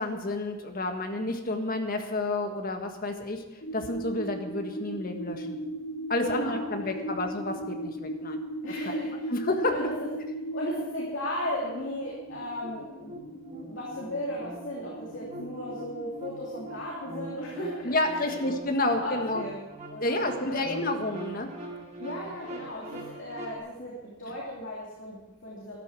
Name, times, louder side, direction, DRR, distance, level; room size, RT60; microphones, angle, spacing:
voice 1, 0.0-3.4 3.7-5.6 6.1-8.4 8.8-8.9 9.3-9.8 17.8-19.4 20.0-21.5, left 2 dB, 45° left, 5 dB, 1.6 m, -30 dB
sound 1, 3.6-18.6, right 1 dB, 80° left, 5.7 m, -39 dB
voice 2, 6.2-7.2 8.6-9.3 9.7-10.1 10.5-13.1 13.7-18.4 18.9-19.6 19.9-20.6 22.0-25.8, left 1 dB, 60° left, -4 dB, 3.0 m, -36 dB
sound 2, 12.3-23.6, right 1 dB, 35° right, 2.1 m, -42 dB
13.0 x 12.5 x 6.2 m, 1.1 s
head